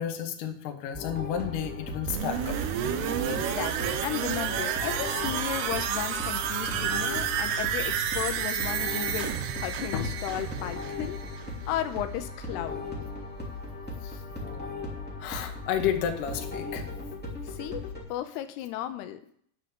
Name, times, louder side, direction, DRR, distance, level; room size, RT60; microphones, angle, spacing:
voice 1, 0.0-2.6 3.0-3.3 9.9-10.1 14.0-14.6 15.2-16.9, left 9 dB, 65° left, 4 dB, 2.4 m, -32 dB
sound 1, 0.9-18.0, left 2 dB, 5° left, 2.3 m, -38 dB
sound 2, 2.1-11.8 12.1-12.2, right 9 dB, 90° right, 2.9 m, -31 dB
voice 2, 3.3-11.2 11.7-12.8 17.5-17.8 18.1-19.2, left 12 dB, 85° left, 9 dB, 2.8 m, -34 dB
9.9 x 6.4 x 6.8 m, 0.62 s
omnidirectional pair, 4.6 m